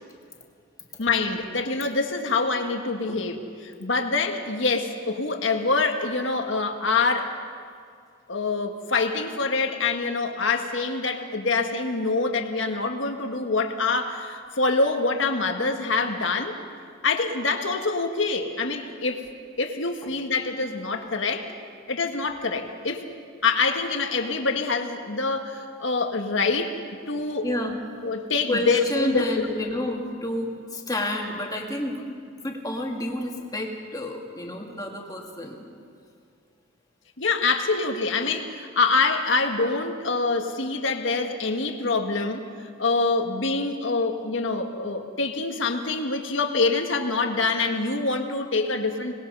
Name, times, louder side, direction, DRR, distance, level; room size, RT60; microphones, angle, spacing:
voice 1, 1.0-7.3 8.3-16.6 17.0-19.2 19.6-21.5 21.9-23.1 23.4-26.8 27.1-27.5 28.0-29.6 37.2-42.5 42.8-49.1, left 3 dB, 70° left, 5 dB, 1.7 m, -25 dB
voice 2, 27.4-27.8 28.5-32.0 32.4-35.7, left 1 dB, 20° left, 0 dB, 2.4 m, -30 dB
26.0 x 20.0 x 5.5 m, 2.2 s
head